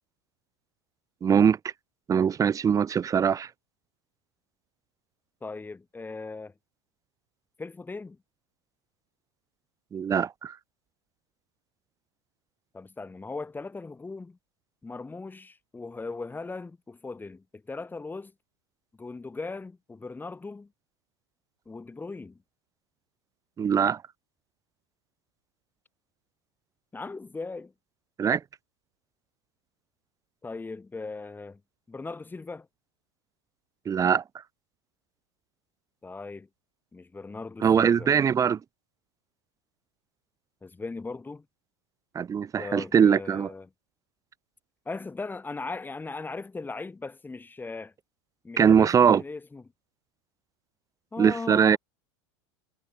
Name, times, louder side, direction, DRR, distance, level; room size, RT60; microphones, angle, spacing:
voice 1, 1.2-1.6 2.1-3.5 9.9-10.5 23.6-24.0 28.2-28.4 33.9-34.2 37.6-38.6 42.1-43.5 48.6-49.2 51.2-51.8, right 7 dB, 20° right, 0.7 m, -22 dB
voice 2, 5.4-6.5 7.6-8.2 12.7-14.4 14.8-18.3 19.0-20.7 21.7-22.4 26.9-27.7 30.4-31.6 31.9-32.7 36.0-36.5 36.9-38.1 40.6-41.4 42.6-43.7 44.8-47.9 48.4-49.6 51.1-51.8, left 3 dB, 15° left, 3.0 m, -38 dB
hypercardioid pair, 100°, 15 cm